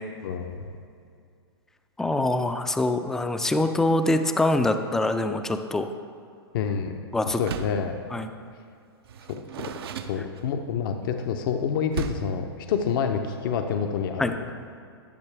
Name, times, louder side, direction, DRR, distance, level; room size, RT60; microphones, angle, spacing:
voice 1, 0.2-0.7 6.5-6.9 7.2-8.0 9.6-9.7 10.0-14.3, left 7 dB, 55° left, 6 dB, 0.6 m, -28 dB
voice 2, 2.0-5.9 7.1-7.4 8.1-8.3 14.2-14.3, left 2 dB, 5° left, 8 dB, 0.3 m, -24 dB
Door, 7.3-7.9 9.0-10.7 11.9-12.4, right 6 dB, 70° right, 0.6 m, -35 dB
12.0 x 6.6 x 3.3 m, 2.3 s
hypercardioid pair, 115°, 13 cm